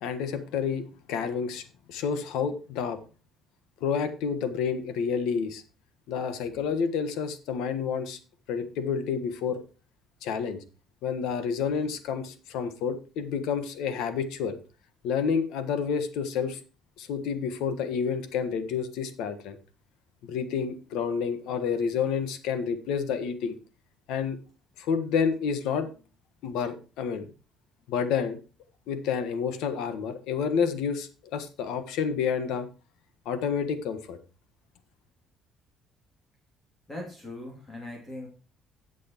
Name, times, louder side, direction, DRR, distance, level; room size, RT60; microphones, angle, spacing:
voice 1, 0.0-1.6 1.9-3.0 3.8-5.6 6.1-8.2 8.5-9.6 10.2-10.6 11.0-14.6 15.0-16.6 17.0-19.6 20.2-23.6 24.1-24.4 24.8-25.9 26.4-27.3 27.9-28.4 28.9-32.7 33.2-34.2, left 6 dB, 90° left, 9 dB, 1.4 m, -29 dB
voice 2, 36.9-38.3, left 1 dB, 20° left, 0 dB, 2.7 m, -40 dB
17.0 x 6.3 x 3.0 m, 0.33 s
cardioid pair, 135°, 0 cm